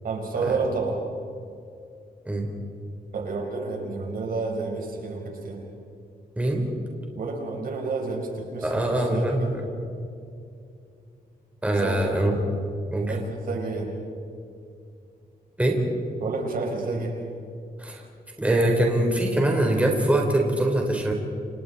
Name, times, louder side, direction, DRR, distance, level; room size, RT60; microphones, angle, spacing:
voice 1, 0.0-1.0 3.1-5.6 7.2-9.6 11.8-12.3 13.1-14.0 16.2-17.2, right 3 dB, 65° right, 1 dB, 4.7 m, -30 dB
voice 2, 8.6-9.5 11.6-12.3 12.9-13.1 15.6-15.8 17.8-18.0 18.4-21.1, right 1 dB, 10° right, 0 dB, 3.9 m, -23 dB
30.0 x 28.5 x 4.2 m, 2.5 s
wide cardioid pair, 140°, 16 cm